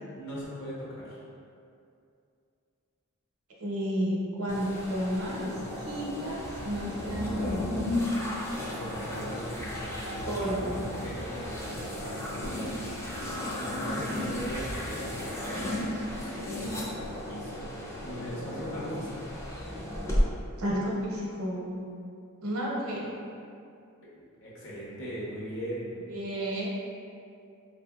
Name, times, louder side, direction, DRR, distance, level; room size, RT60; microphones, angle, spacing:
voice 1, 0.1-1.2 8.6-15.5 16.3-16.9 17.3-19.3 24.1-25.9, equal, 55° left, -8 dB, 0.9 m, -40 dB
voice 2, 3.6-5.5 5.8-7.8 10.2-10.9 20.6-21.8 22.4-23.1 26.1-26.7, equal, 70° right, -4 dB, 0.7 m, -32 dB
sound 1, 4.5-20.2, left 1 dB, 10° left, 0.3 m, -34 dB
4.3 x 2.6 x 2.3 m, 2.5 s
head